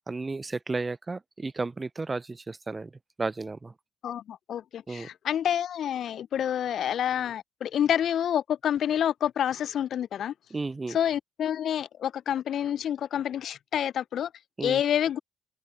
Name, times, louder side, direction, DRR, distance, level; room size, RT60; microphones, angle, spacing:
voice 1, 0.1-2.9 3.2-3.7 4.9-5.1 10.5-11.0 14.6-14.8, right 3 dB, 25° right, 0.4 m, -33 dB
voice 2, 4.0-10.3 10.9-14.3 14.6-15.2, left 10 dB, 55° left, 0.5 m, -28 dB
open air
hypercardioid pair, 50°, 0 cm